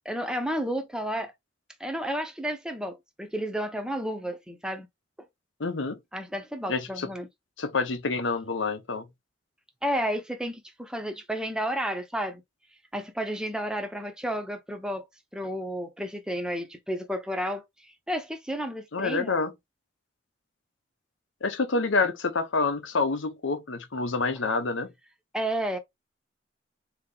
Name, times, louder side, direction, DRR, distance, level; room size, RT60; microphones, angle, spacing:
voice 1, 0.0-1.3 1.8-4.9 6.1-7.3 9.8-12.4 12.9-15.0 15.3-19.4 25.3-25.8, equal, 5° right, 0.6 m, -32 dB
voice 2, 5.6-6.0 6.7-7.1 7.6-9.1 18.9-19.5 21.4-24.9, left 3 dB, 80° left, 0.8 m, -27 dB
4.0 x 2.9 x 3.8 m
head